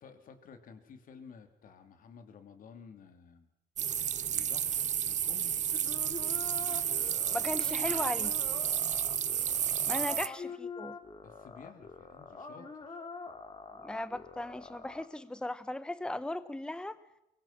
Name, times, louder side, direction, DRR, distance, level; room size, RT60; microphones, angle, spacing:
voice 1, 0.0-3.5 4.3-5.7 10.0-10.1 11.2-13.0, left 6 dB, 55° left, 8 dB, 3.1 m, -53 dB
sound 1, 3.8-10.3, right 9 dB, 45° right, 0.9 m, -31 dB
sound 2, 5.7-15.0, left 4 dB, 25° left, 3.0 m, -45 dB
voice 2, 7.3-8.3 9.9-11.0 13.8-17.0, left 1 dB, 5° left, 14 dB, 1.0 m, -37 dB
23.5 x 23.5 x 6.0 m, 0.85 s
cardioid pair, 110°, 17 cm